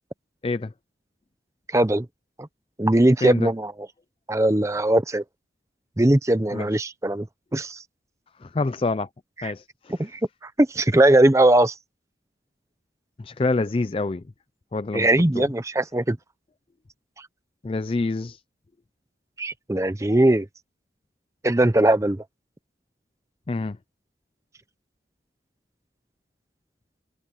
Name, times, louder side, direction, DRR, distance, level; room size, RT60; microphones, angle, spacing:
voice 1, 1.7-2.1 2.8-3.7 4.3-5.2 6.0-7.3 7.5-7.8 9.4-9.5 10.0-10.2 10.6-11.7 14.9-16.2 19.4-20.5 21.4-22.2, right 1 dB, 15° right, 0.6 m, -20 dB
voice 2, 8.4-9.1 9.4-10.1 13.2-14.2 14.7-15.1 15.4-15.5 17.6-18.4 23.5-23.8, left 3 dB, 30° left, 0.4 m, -26 dB
head